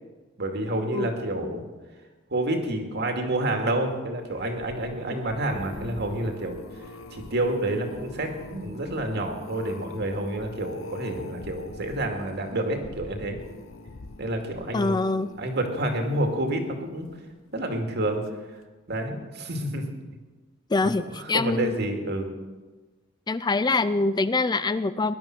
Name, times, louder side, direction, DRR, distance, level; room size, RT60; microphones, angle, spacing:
voice 1, 0.4-1.7 2.3-6.6 7.1-13.4 14.2-15.0 15.4-17.1 17.5-18.2 18.9-19.8 20.8-22.3, right 1 dB, 55° right, 4 dB, 2.4 m, -29 dB
sound 1, 4.2-17.5 18.0-18.4 18.6-18.7, left 2 dB, 80° left, 0.9 m, -44 dB
voice 2, 14.7-15.3 20.7-21.7 23.3-25.2, left 3 dB, 20° left, 14 dB, 0.4 m, -24 dB
20.0 x 11.5 x 6.1 m, 1.3 s
head